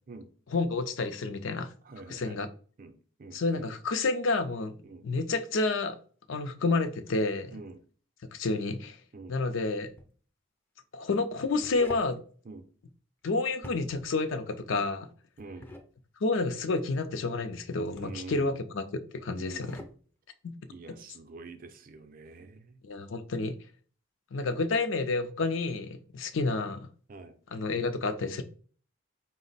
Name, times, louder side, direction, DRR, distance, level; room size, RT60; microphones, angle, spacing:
voice 1, 0.5-1.7 2.1-2.5 3.3-4.8 5.0-6.0 6.3-7.6 8.3-9.0 9.3-9.9 10.9-12.2 13.2-15.1 16.2-19.8 20.4-20.5 22.8-23.6 24.3-26.9 27.5-28.4, left 3 dB, 70° left, 10 dB, 0.5 m, -30 dB
voice 2, 1.9-2.4 2.8-2.9 3.2-3.7 4.8-5.1 7.5-7.8 9.1-9.4 12.5-12.6 15.4-15.7 18.0-18.6 19.3-19.8 20.7-22.8 27.1-27.3, right 3 dB, 45° right, 8 dB, 0.5 m, -46 dB
sound 1, 9.8-10.1 11.3-12.2 13.5-14.1 15.4-15.9 17.6-18.2 19.4-20.0, left 1 dB, 10° left, 0.4 m, -46 dB
5.1 x 2.0 x 3.9 m, 0.43 s
head